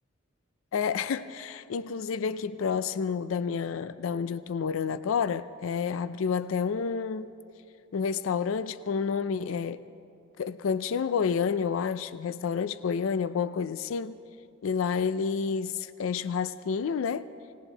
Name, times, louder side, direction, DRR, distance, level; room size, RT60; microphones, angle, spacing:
voice 1, 0.7-7.3 7.9-9.8 10.4-14.2 14.6-17.3, left 6 dB, 80° left, 0.4 m, -29 dB
20.0 x 18.0 x 4.0 m
head